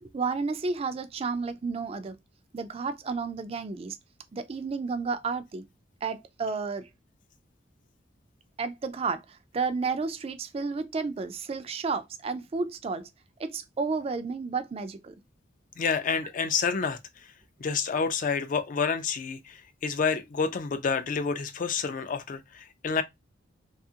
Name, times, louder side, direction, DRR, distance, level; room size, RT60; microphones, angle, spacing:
voice 1, 0.0-2.2 2.5-4.0 4.3-5.7 6.0-6.9 8.6-13.1 13.4-15.1, right 4 dB, 30° right, 0.3 m, -32 dB
voice 2, 15.8-17.0 17.6-23.0, left 5 dB, 45° left, 0.4 m, -28 dB
2.7 x 2.4 x 2.7 m
head